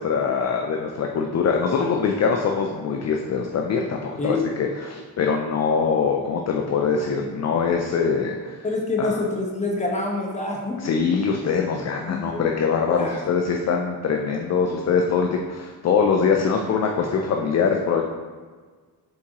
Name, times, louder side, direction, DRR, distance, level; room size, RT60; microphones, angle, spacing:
voice 1, 0.0-8.6 9.0-9.1 10.8-18.0, left 5 dB, 45° left, 2 dB, 0.4 m, -23 dB
voice 2, 8.6-10.9 12.1-12.4 12.9-13.3, left 2 dB, 15° left, -1 dB, 0.9 m, -27 dB
4.3 x 3.6 x 2.9 m, 1.5 s
cardioid pair, 85°, 40 cm